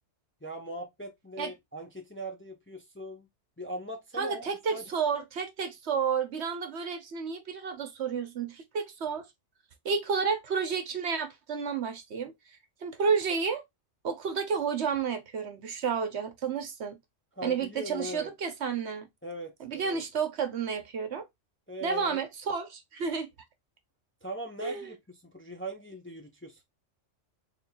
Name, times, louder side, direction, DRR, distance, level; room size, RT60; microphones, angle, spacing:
voice 1, 0.4-3.3 3.6-4.9 17.3-18.3 19.2-20.0 21.7-22.2 24.2-26.6, right 1 dB, 10° left, 0.7 m, -40 dB
voice 2, 4.2-9.3 9.8-12.3 12.8-13.6 14.0-17.0 17.4-19.1 19.6-21.2 21.8-23.3 24.6-24.9, right 6 dB, 65° right, 1.1 m, -31 dB
4.2 x 3.6 x 2.3 m
omnidirectional pair, 1.3 m